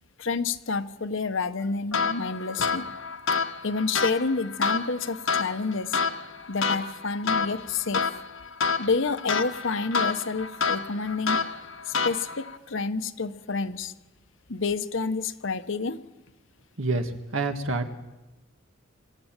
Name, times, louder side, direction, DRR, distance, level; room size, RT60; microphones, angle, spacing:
voice 1, 0.2-2.9 3.6-6.0 6.5-8.2 8.8-11.4 11.9-13.9 14.5-16.0, left 4 dB, 65° left, 10 dB, 1.0 m, -29 dB
sound 1, 1.9-12.6, left 5 dB, 80° left, 1.5 m, -29 dB
voice 2, 16.8-17.9, right 3 dB, 75° right, 6 dB, 1.9 m, -28 dB
26.0 x 13.0 x 9.0 m, 1.1 s
head